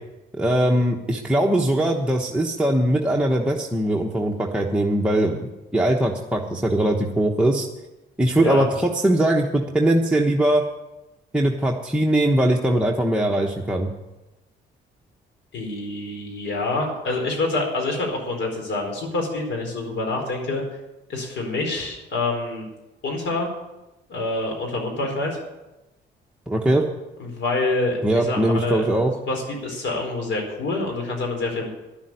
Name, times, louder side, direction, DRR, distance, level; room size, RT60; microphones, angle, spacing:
voice 1, 0.3-7.7 8.2-10.6 11.3-13.9 26.5-26.9 28.0-29.1, right 1 dB, 5° right, -1 dB, 1.1 m, -21 dB
voice 2, 8.3-8.7 15.5-20.6 21.1-22.6 23.0-23.5 24.1-25.4 27.2-28.8 29.3-31.7, left 2 dB, 70° left, 1 dB, 4.5 m, -26 dB
11.0 x 7.3 x 9.6 m, 1.0 s
cardioid pair, 90°, 20 cm